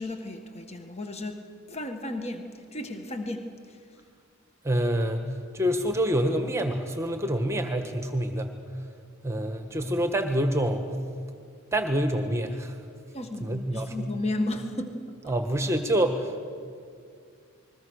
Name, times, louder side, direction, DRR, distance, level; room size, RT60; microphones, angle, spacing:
voice 1, 0.0-1.4 1.7-2.5 2.7-3.4 13.1-14.9 15.2-15.3, left 1 dB, 30° left, 5 dB, 1.7 m, -33 dB
voice 2, 4.6-5.3 5.5-8.5 9.2-10.9 11.7-12.8 13.4-14.1 15.3-16.5, right 1 dB, 15° right, 6 dB, 1.4 m, -26 dB
28.5 x 21.5 x 6.6 m, 2.2 s
head